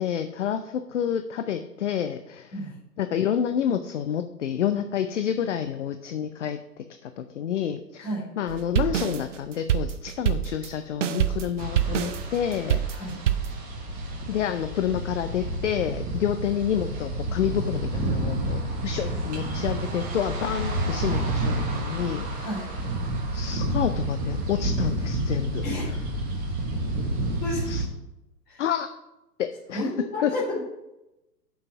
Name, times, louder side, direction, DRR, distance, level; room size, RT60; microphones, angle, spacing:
voice 1, 0.0-2.5 3.0-8.1 8.4-12.9 14.3-22.5 23.3-25.6 27.7-27.8 28.6-28.9 29.4-29.9 30.2-30.3, left 9 dB, 50° left, 9 dB, 0.5 m, -29 dB
sound 1, 8.5-13.6, right 10 dB, 50° right, 0.6 m, -26 dB
sound 2, 11.6-27.9, right 1 dB, 15° right, 1.0 m, -30 dB
voice 2, 29.7-30.6, left 1 dB, 20° left, -5 dB, 2.9 m, -31 dB
6.4 x 5.6 x 5.9 m, 0.94 s
figure-of-eight pair, 115°, 50 cm